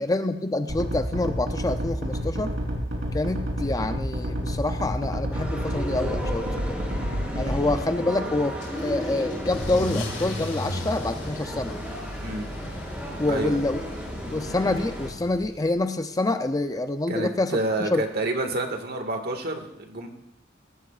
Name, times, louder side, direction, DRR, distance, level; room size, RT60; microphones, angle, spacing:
voice 1, 0.0-2.5 3.1-6.9 7.4-11.8 13.2-13.8 14.3-18.0, left 2 dB, 20° left, 8 dB, 0.5 m, -27 dB
sound 1, 0.7-7.8, equal, 80° right, 3.6 m, -29 dB
sound 2, 5.3-15.1, equal, 10° right, 4.1 m, -34 dB
Car / Engine starting / Accelerating revving vroom, 8.6-15.8, left 1 dB, 65° left, 2.4 m, -37 dB
voice 2, 13.3-13.6 17.1-20.1, right 2 dB, 55° right, 4 dB, 1.9 m, -29 dB
18.5 x 14.5 x 2.5 m, 0.79 s
head